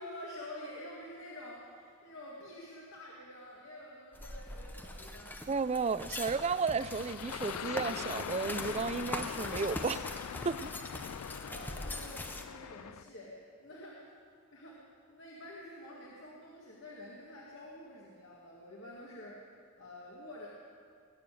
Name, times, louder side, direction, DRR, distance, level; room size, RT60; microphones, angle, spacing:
voice 1, 0.0-5.5 6.0-6.2 11.2-14.0 14.5-19.4 19.8-20.5, left 1 dB, 60° left, -4 dB, 2.0 m, -48 dB
sound 1, 4.1-12.4, left 1 dB, 10° left, 0.8 m, -42 dB
voice 2, 5.5-10.0 10.4-10.7, right 5 dB, 30° right, 15 dB, 0.3 m, -33 dB
sound 2, 6.8-13.1, left 9 dB, 90° left, 0.4 m, -42 dB
20.5 x 7.2 x 9.2 m, 2.2 s
head